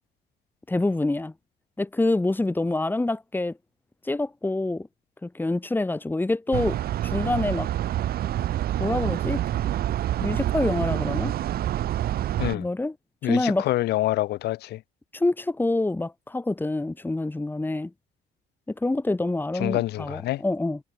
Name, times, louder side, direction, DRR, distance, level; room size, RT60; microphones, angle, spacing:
voice 1, 0.7-1.3 1.8-3.6 4.0-4.9 5.2-6.8 7.0-7.7 8.8-9.4 10.2-11.4 12.5-12.9 13.2-13.7 15.1-17.9 18.7-20.8, left 2 dB, 10° left, 4.3 m, -26 dB
sound 1, 6.5-12.5, right 12 dB, 65° right, 3.2 m, -27 dB
voice 2, 13.2-14.8 19.6-20.4, left 15 dB, 75° left, 7.9 m, -26 dB
cardioid pair, 110°, 17 cm